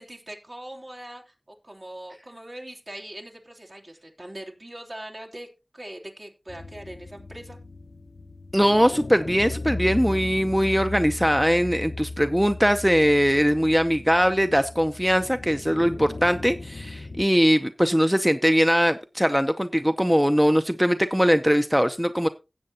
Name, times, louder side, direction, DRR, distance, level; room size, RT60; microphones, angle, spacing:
voice 1, 0.0-5.5 5.7-7.6, right 1 dB, 50° right, 0 dB, 2.9 m, -41 dB
sound 1, 6.5-17.2, left 2 dB, 80° left, 0.7 m, -37 dB
voice 2, 8.5-22.3, equal, 5° right, 9 dB, 0.6 m, -21 dB
16.5 x 7.8 x 2.8 m, 0.28 s
wide cardioid pair, 55°, 0 cm